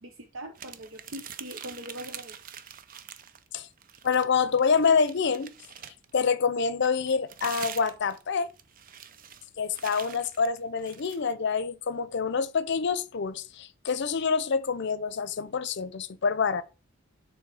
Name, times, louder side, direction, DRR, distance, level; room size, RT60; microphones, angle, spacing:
voice 1, 0.0-2.3, right 1 dB, 75° right, 0.8 m, -41 dB
sound 1, 0.5-3.5 3.8-6.1 6.8-11.2, right 9 dB, 45° right, 0.5 m, -44 dB
voice 2, 4.0-5.5 6.1-8.5 9.6-16.6, left 5 dB, 60° left, 0.6 m, -26 dB
6.9 x 3.2 x 4.8 m
head